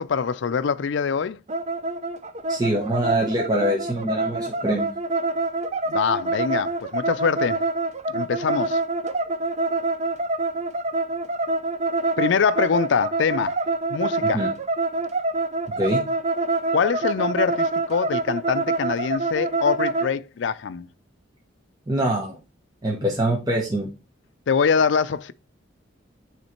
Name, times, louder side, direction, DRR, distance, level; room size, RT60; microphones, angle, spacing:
voice 1, 0.0-1.4 5.9-7.6 8.1-8.8 12.2-13.5 13.9-14.4 16.7-20.9 24.5-25.3, left 6 dB, 70° left, 0.4 m, -24 dB
sound 1, 1.5-20.1, right 2 dB, 35° right, 0.5 m, -26 dB
voice 2, 2.5-4.9 14.2-14.5 15.8-16.0 21.9-22.4 22.8-23.9, right 1 dB, 20° right, 1.1 m, -24 dB
8.2 x 3.2 x 4.4 m
head